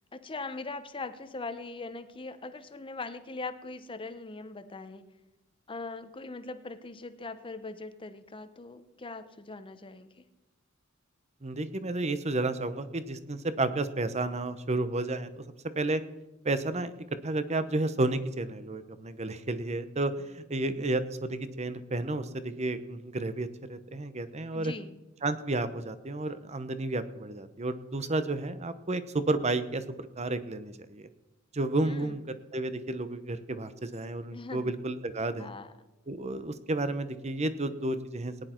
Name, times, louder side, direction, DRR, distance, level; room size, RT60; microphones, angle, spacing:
voice 1, 0.1-5.0 5.7-10.3 24.5-25.0 31.8-32.2 34.3-34.7 35.4-35.7, left 3 dB, 25° left, 10 dB, 0.8 m, -41 dB
voice 2, 11.4-15.4 15.7-16.0 16.4-24.7 25.2-29.8 30.2-31.1 31.5-32.2 32.5-35.5 36.1-38.3, right 2 dB, 30° right, 12 dB, 0.9 m, -31 dB
19.0 x 10.5 x 4.5 m, 1.0 s
head